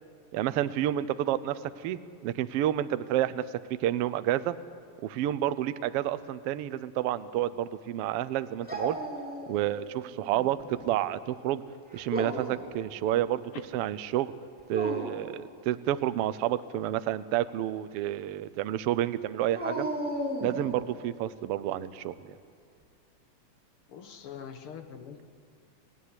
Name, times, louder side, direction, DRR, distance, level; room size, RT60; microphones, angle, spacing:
voice 1, 0.3-3.4 3.7-4.6 5.0-9.0 9.5-11.6 11.9-14.3 14.7-19.9 20.4-22.3, right 12 dB, 90° right, 14 dB, 1.3 m, -30 dB
Dog, 8.7-9.8 10.2-10.9 11.9-12.7 14.6-15.3 19.5-20.9, right 1 dB, 5° right, 2.5 m, -35 dB
voice 2, 23.9-25.3, left 7 dB, 55° left, 7 dB, 1.7 m, -44 dB
25.5 x 16.5 x 9.8 m, 2.2 s
omnidirectional pair, 3.6 m